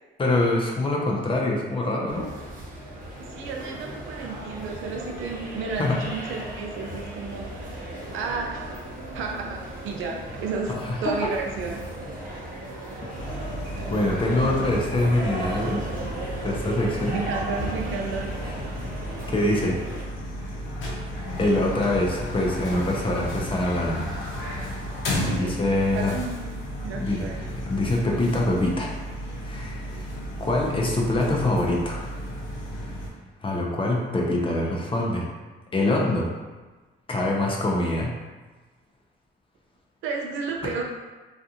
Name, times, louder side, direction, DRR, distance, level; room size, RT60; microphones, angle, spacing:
voice 1, 0.2-2.3 5.8-6.0 10.7-11.3 13.0-13.3 13.9-15.8 16.4-17.2 19.3-19.8 21.4-24.1 24.4-24.5 25.3-26.1 27.0-28.9 29.4-30.1 30.4-32.1 33.4-35.3 35.7-36.3 37.1-38.2, left 1 dB, 25° left, -1 dB, 0.5 m, -24 dB
sound 1, 2.1-20.0, right 1 dB, 45° right, 0.8 m, -36 dB
voice 2, 3.2-7.9 8.1-8.7 9.1-10.7 11.0-11.9 17.1-18.4 25.0-25.6 25.9-26.5 26.8-27.6 40.0-40.8, right 4 dB, 90° right, 1 dB, 0.5 m, -32 dB
sound 2, 13.2-33.1, equal, 75° left, 0.7 m, -33 dB
2.4 x 2.4 x 2.7 m, 1.3 s
cardioid pair, 90°, 20 cm